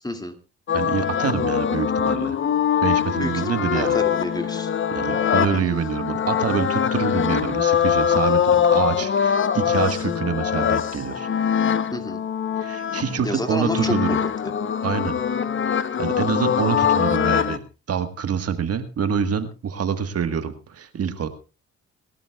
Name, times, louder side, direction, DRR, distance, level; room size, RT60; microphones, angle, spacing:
voice 1, 0.0-0.4 3.1-4.7 5.4-5.8 11.9-12.2 13.2-14.5, left 1 dB, 15° left, 6 dB, 2.3 m, -30 dB
sound 1, 0.7-17.6, left 8 dB, 40° left, 0.9 m, -23 dB
voice 2, 0.7-2.4 2.8-4.0 4.9-11.3 12.6-14.2 14.8-15.2 15.7-17.6 17.9-21.3, right 7 dB, 50° right, 9 dB, 1.6 m, -26 dB
26.5 x 12.5 x 2.3 m, 0.33 s
cardioid pair, 90°, 30 cm